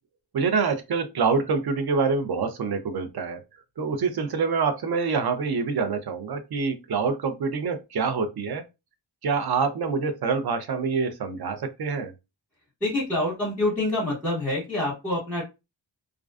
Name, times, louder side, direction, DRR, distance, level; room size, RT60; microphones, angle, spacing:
voice 1, 0.3-3.4 3.8-8.6 9.2-12.1, right 5 dB, 55° right, 0.5 m, -26 dB
voice 2, 12.8-15.4, left 1 dB, 5° left, 0.9 m, -26 dB
2.4 x 2.2 x 2.3 m
wide cardioid pair, 120°, 45 cm